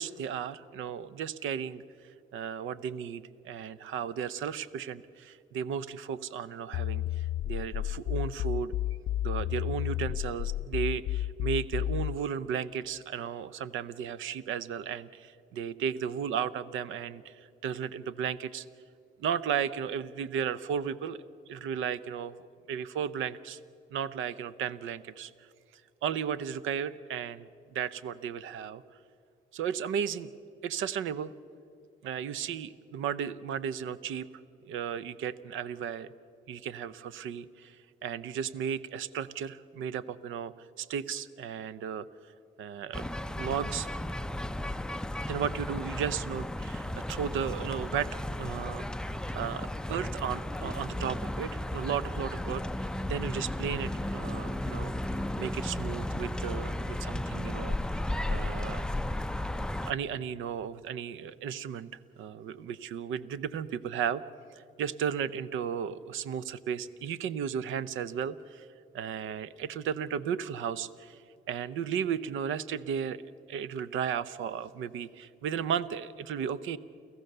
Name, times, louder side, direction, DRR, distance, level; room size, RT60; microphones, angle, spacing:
voice 1, 0.0-1.8 2.3-8.7 9.2-18.7 19.2-21.2 21.5-22.4 22.7-23.6 23.9-25.5 26.0-28.8 29.5-30.3 30.6-31.3 32.0-34.3 34.6-36.1 36.5-42.1 42.6-43.9 45.2-48.1 48.4-57.8 58.3-58.9 59.6-61.9 62.2-64.2 64.5-68.7 68.9-73.2 73.5-76.8, right 8 dB, 85° right, 17 dB, 0.7 m, -35 dB
sound 1, 6.7-12.2, left 13 dB, 65° left, 0.4 m, -32 dB
sound 2, 42.9-59.9, left 1 dB, 5° left, 0.5 m, -34 dB
30.0 x 14.5 x 6.7 m, 2.3 s
cardioid pair, 90°, 20 cm